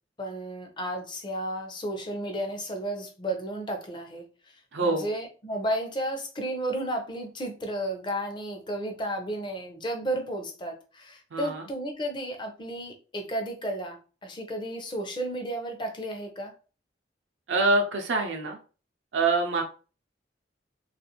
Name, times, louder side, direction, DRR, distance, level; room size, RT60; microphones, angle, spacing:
voice 1, 0.2-4.2 4.8-16.5, right 1 dB, 25° left, 4 dB, 0.6 m, -33 dB
voice 2, 4.7-5.1 11.3-11.7 17.5-18.6 19.1-19.6, right 3 dB, 85° right, 3 dB, 0.5 m, -25 dB
2.4 x 2.4 x 2.9 m, 0.36 s
head